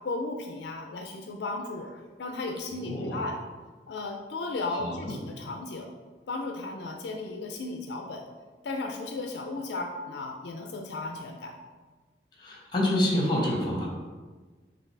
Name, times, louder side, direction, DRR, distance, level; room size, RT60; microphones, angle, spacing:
voice 1, 0.0-3.4 3.9-5.9 6.3-8.3 8.6-11.6, left 2 dB, 75° left, 3 dB, 0.4 m, -35 dB
voice 2, 2.7-3.2 4.7-5.1 12.4-13.9, left 1 dB, 25° left, -2 dB, 0.9 m, -28 dB
5.7 x 2.6 x 3.3 m, 1.4 s
head